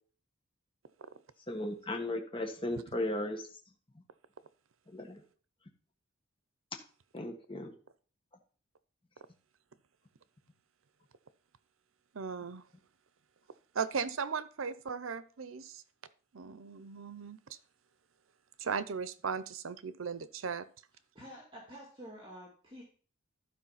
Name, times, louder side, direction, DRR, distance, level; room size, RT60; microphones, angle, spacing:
voice 1, 1.5-3.5 4.9-5.2 7.1-7.7, left 1 dB, 25° left, 3 dB, 1.5 m, -36 dB
voice 2, 12.1-12.6 13.7-15.8 16.3-17.4 18.6-20.7, right 5 dB, 85° right, 15 dB, 0.6 m, -37 dB
voice 3, 21.1-22.8, equal, 25° right, -2 dB, 2.3 m, -49 dB
12.0 x 4.8 x 5.7 m, 0.41 s
head